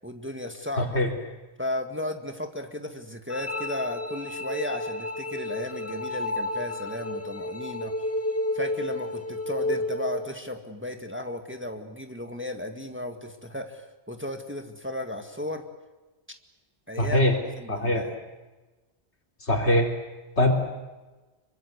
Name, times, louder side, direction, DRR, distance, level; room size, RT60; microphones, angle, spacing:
voice 1, 0.0-1.0 1.6-7.9 8.5-15.7 16.9-17.3 17.6-18.1, left 1 dB, 10° right, 5 dB, 1.8 m, -35 dB
voice 2, 0.8-1.1 17.0-17.4 17.7-18.1 19.4-19.9 20.4-20.5, left 1 dB, 80° left, 2 dB, 4.0 m, -22 dB
sound 1, 3.3-10.3, left 1 dB, 10° left, 1.9 m, -31 dB
26.0 x 23.5 x 8.1 m, 1.2 s
omnidirectional pair, 1.1 m